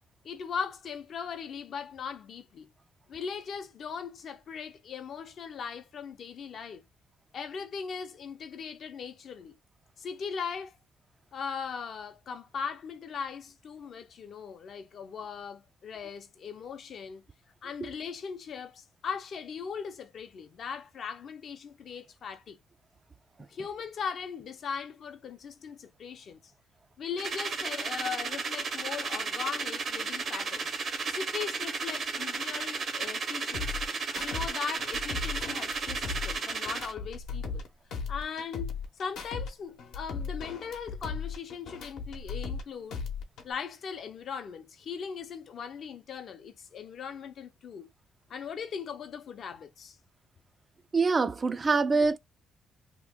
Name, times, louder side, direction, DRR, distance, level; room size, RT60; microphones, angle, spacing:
voice 1, 0.2-2.7 3.1-6.9 7.3-9.6 10.0-10.8 11.3-17.2 17.6-22.6 23.5-26.4 27.0-30.7 31.1-33.8 34.2-37.6 38.1-43.0 43.4-47.9 48.3-50.0, left 6 dB, 60° left, 0.6 m, -39 dB
sound 1, 27.2-36.9, right 4 dB, 55° right, 0.7 m, -34 dB
sound 2, 33.5-34.5 34.8-37.7 37.9-39.5 39.8-42.6 42.9-43.5, left 5 dB, 85° left, 0.8 m, -37 dB
voice 2, 50.9-52.2, right 4 dB, 30° right, 0.3 m, -24 dB
2.9 x 2.2 x 3.5 m
cardioid pair, 90°, 0 cm